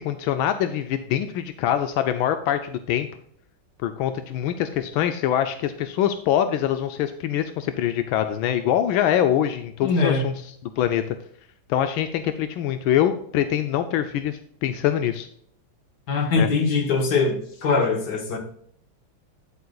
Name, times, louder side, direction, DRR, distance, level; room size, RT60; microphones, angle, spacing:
voice 1, 0.0-3.1 3.8-11.2 11.7-15.3 16.4-16.5, left 10 dB, 85° left, 9 dB, 1.4 m, -24 dB
voice 2, 9.8-10.2 16.1-18.4, left 4 dB, 60° left, 3 dB, 1.9 m, -22 dB
9.5 x 8.5 x 2.3 m, 0.65 s
omnidirectional pair, 2.2 m